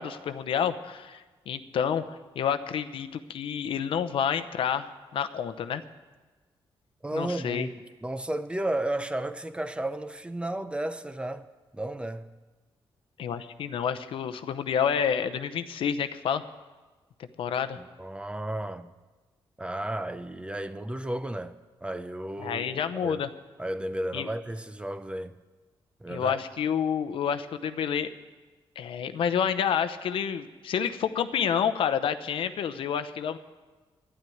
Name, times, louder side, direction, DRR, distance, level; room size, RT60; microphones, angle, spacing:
voice 1, 0.0-5.8 7.1-7.7 13.2-16.4 17.4-17.8 22.4-23.3 24.1-24.3 26.1-28.1 28.8-33.4, left 8 dB, 75° left, 0.8 m, -29 dB
voice 2, 7.0-7.7 8.0-11.5 11.7-12.3 17.8-18.9 19.6-21.6 21.8-23.3 23.6-25.3 26.0-26.4, right 1 dB, 10° right, 0.6 m, -33 dB
12.0 x 11.5 x 9.3 m
cardioid pair, 130°, 9 cm